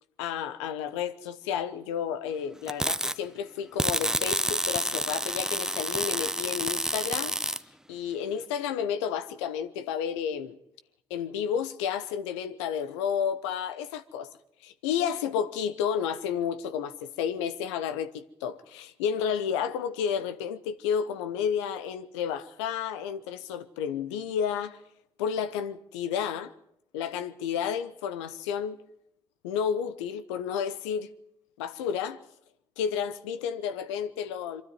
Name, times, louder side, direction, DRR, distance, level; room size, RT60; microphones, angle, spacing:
voice 1, 0.2-7.3 7.9-10.6 11.1-14.3 14.6-24.8 25.2-26.5 26.9-28.8 29.4-31.1 31.6-32.2 32.8-34.6, left 8 dB, 85° left, 1.0 m, -31 dB
sound 1, 2.7-3.1 3.8-7.6, right 1 dB, 5° right, 0.8 m, -29 dB
23.5 x 13.0 x 9.5 m
hypercardioid pair, 50°, 15 cm